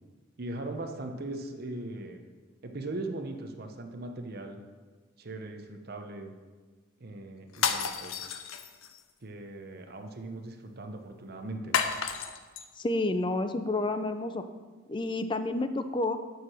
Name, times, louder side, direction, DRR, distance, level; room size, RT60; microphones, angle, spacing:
voice 1, 0.4-2.2 2.6-4.6 5.2-6.3 7.0-8.4 9.2-11.8, right 2 dB, 50° right, 5 dB, 0.8 m, -39 dB
sound 1, 7.5-9.0 11.7-12.6, left 7 dB, 85° left, 0.6 m, -31 dB
voice 2, 12.8-14.4 14.9-16.2, left 2 dB, 25° left, 10 dB, 0.4 m, -29 dB
9.3 x 4.8 x 6.2 m, 1.4 s
head